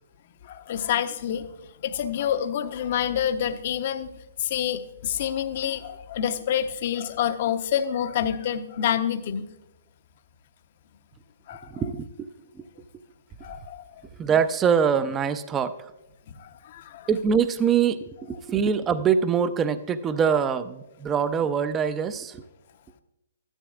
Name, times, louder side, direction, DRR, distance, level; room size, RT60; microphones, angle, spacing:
voice 1, 0.4-1.5 1.8-4.1 4.4-9.5 11.5-11.7 13.4-13.8 16.4-17.1, left 9 dB, 50° left, 10 dB, 0.8 m, -27 dB
voice 2, 11.7-12.3 12.6-12.7 14.1-15.9 17.1-22.4, right 7 dB, 20° right, 12 dB, 0.5 m, -24 dB
15.5 x 12.5 x 2.4 m, 0.94 s
hypercardioid pair, 130°, 0 cm